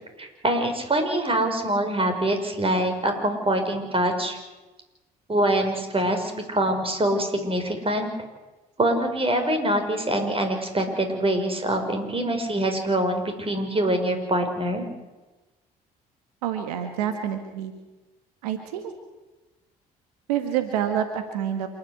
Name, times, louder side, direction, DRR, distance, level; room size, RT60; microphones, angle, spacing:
voice 1, 0.2-4.4 5.3-8.1 8.8-14.9, right 1 dB, 30° right, 5 dB, 5.7 m, -24 dB
voice 2, 16.4-17.7 18.4-18.9 20.3-21.7, right 9 dB, 85° right, 7 dB, 1.6 m, -27 dB
27.5 x 10.5 x 9.8 m, 1.1 s
hypercardioid pair, 55°, 20 cm